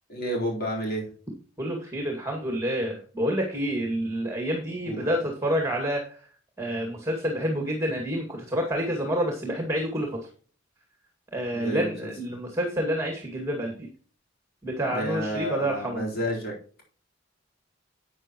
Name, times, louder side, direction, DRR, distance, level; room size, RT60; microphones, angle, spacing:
voice 1, 0.1-1.1 4.8-5.2 11.5-12.1 14.8-16.5, equal, 55° left, -2 dB, 4.2 m, -30 dB
voice 2, 1.6-6.2 6.6-10.1 11.3-13.9 14.6-16.0, equal, 15° right, 2 dB, 2.3 m, -28 dB
12.0 x 8.6 x 3.1 m, 0.41 s
head